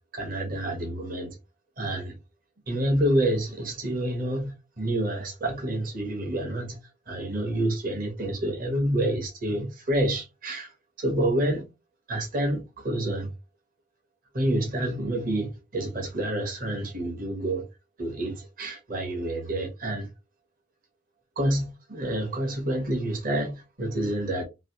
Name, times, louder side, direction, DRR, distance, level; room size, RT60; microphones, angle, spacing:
voice 1, 0.1-1.3 1.8-2.1 2.7-6.8 7.1-10.7 11.0-11.7 12.1-13.3 14.3-17.6 18.0-20.1 21.4-24.4, right 1 dB, 50° right, 1.1 m, -28 dB
3.2 x 2.6 x 2.8 m
head